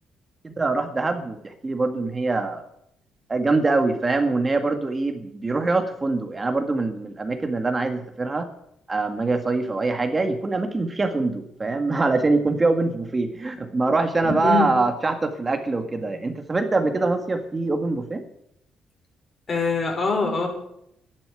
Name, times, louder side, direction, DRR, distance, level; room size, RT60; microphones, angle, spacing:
voice 1, 0.4-2.6 3.3-8.5 8.9-18.2, right 3 dB, 25° right, 6 dB, 1.9 m, -24 dB
voice 2, 14.2-14.8 19.5-20.5, left 4 dB, 40° left, 2 dB, 6.0 m, -23 dB
11.5 x 11.5 x 9.1 m, 0.75 s
cardioid pair, 90°, 0 cm